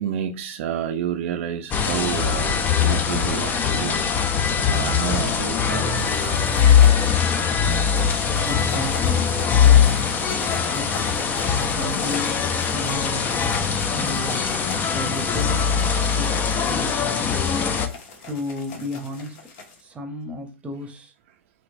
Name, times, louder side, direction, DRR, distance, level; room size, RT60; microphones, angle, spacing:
voice 1, 0.0-4.0 4.7-6.6, right 9 dB, 60° right, 0.4 m, -30 dB
sound 1, 1.7-17.9, left 7 dB, 25° left, 0.4 m, -21 dB
sound 2, 5.9-19.8, left 4 dB, 55° left, 0.9 m, -40 dB
voice 2, 8.4-9.4 9.6-10.3 10.7-11.4 11.7-12.4 12.7-13.3 13.9-14.6 14.9-15.7 16.1-16.4 16.7-17.4 18.3-19.4 19.8-21.1, left 1 dB, 15° right, 0.8 m, -33 dB
3.1 x 3.0 x 2.5 m
hypercardioid pair, 110°, 8 cm